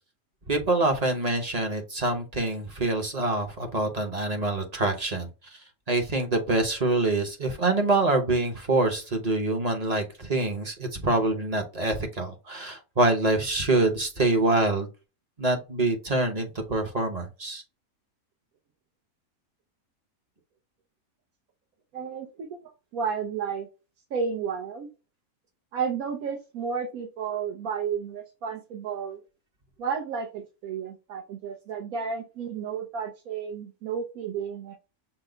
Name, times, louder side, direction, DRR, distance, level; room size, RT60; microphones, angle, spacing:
voice 1, 0.5-5.3 5.9-14.9 15.4-17.6, right 2 dB, 35° right, 0.8 m, -25 dB
voice 2, 21.9-23.7 24.1-24.9 25.7-29.2 29.8-34.7, right 6 dB, 75° right, 1.2 m, -32 dB
5.9 x 2.1 x 3.8 m
omnidirectional pair, 1.5 m